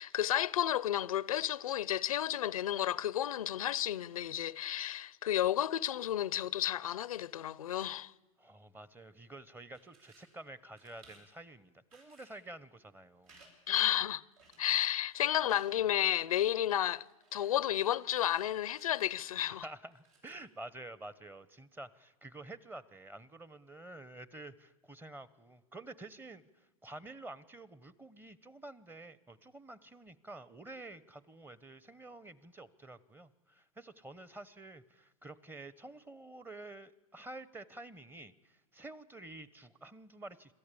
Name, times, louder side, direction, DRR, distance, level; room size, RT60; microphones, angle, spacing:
voice 1, 0.0-8.1 13.7-14.2 14.6-17.0 17.3-19.6, left 11 dB, 85° left, 0.6 m, -32 dB
voice 2, 8.4-13.4 19.5-40.5, right 2 dB, 10° right, 0.9 m, -49 dB
sound 1, 9.7-10.3 10.7-11.3 11.9-12.5 13.2-13.5 13.8-13.9 14.4-14.8 15.1-15.7 16.7-18.5 18.7-19.5 19.9-20.5, right 3 dB, 75° right, 7.7 m, -62 dB
26.0 x 13.5 x 8.5 m
hypercardioid pair, 105°, 18 cm